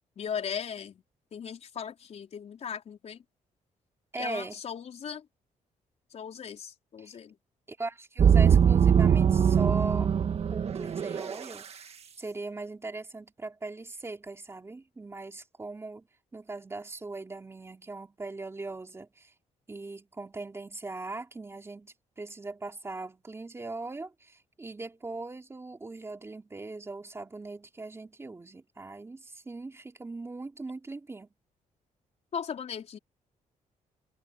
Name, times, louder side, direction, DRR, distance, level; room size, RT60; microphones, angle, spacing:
voice 1, 0.2-1.0 1.3-3.2 4.2-5.3 6.1-7.4 32.3-33.0, left 7 dB, 55° left, 4.6 m, -37 dB
voice 2, 4.1-4.6 7.0-7.1 7.7-10.1 10.5-11.9 12.2-16.1 16.3-19.3 19.7-31.3, right 3 dB, 20° right, 3.0 m, -40 dB
sound 1, 8.2-11.4, right 7 dB, 50° right, 1.7 m, -22 dB
cardioid pair, 125°, 14 cm